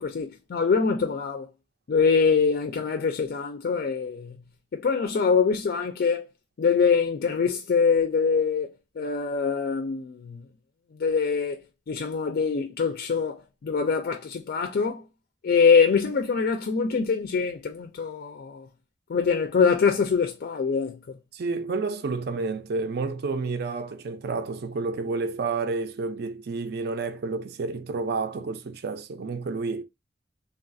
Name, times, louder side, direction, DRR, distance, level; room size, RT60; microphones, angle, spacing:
voice 1, 0.0-1.5 1.9-4.4 4.7-6.3 6.6-10.4 11.0-11.6 11.9-15.0 15.4-18.7 19.1-21.1, left 5 dB, 55° left, 0.4 m, -24 dB
voice 2, 21.3-29.8, right 4 dB, 60° right, 0.5 m, -30 dB
3.4 x 2.3 x 2.5 m
head